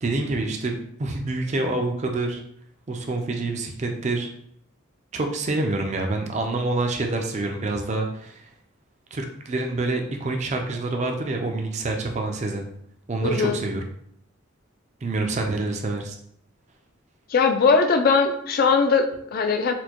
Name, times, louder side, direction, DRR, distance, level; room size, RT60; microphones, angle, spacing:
voice 1, 0.0-2.4 2.9-4.3 5.1-8.4 9.1-12.7 13.1-13.9 15.0-16.1, right 2 dB, 35° right, 3 dB, 0.4 m, -27 dB
voice 2, 13.2-13.6 17.3-19.7, left 5 dB, 45° left, 7 dB, 0.3 m, -20 dB
4.3 x 2.2 x 2.9 m, 0.71 s
head